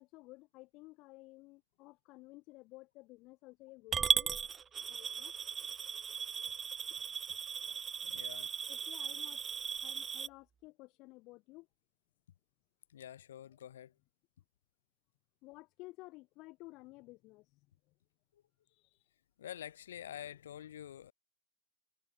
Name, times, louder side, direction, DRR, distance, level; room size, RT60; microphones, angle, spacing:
voice 1, 0.0-4.3 4.9-5.3 6.9-7.0 7.7-7.8 8.7-9.4 9.8-11.7 15.4-17.6 17.9-18.0 18.7-19.0, left 22 dB, 40° left, 4.2 m, -54 dB
Coin (dropping) / Glass, 3.9-10.3, right 7 dB, 20° right, 0.4 m, -36 dB
voice 2, 8.0-8.5 12.9-13.9 18.3-18.4 19.4-21.1, left 10 dB, 60° left, 4.1 m, -47 dB
figure-of-eight pair, 90°, 0 cm